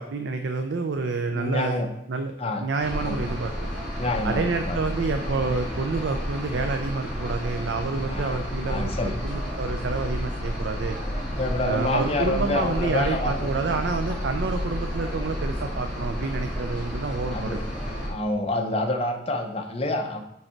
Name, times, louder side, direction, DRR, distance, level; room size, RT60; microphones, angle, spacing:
voice 1, 0.0-1.8 2.1-2.3 2.6-3.5 4.2-11.0 11.7-17.6, right 4 dB, 60° right, 6 dB, 0.4 m, -28 dB
voice 2, 1.3-1.9 2.4-2.6 3.0-3.2 4.0-4.8 8.1-9.2 11.4-13.5 17.3-17.6 18.1-20.2, left 2 dB, 30° left, 4 dB, 0.7 m, -28 dB
sound 1, 2.8-18.1, equal, ahead, 2.9 m, -31 dB
6.4 x 5.4 x 4.4 m, 0.81 s
head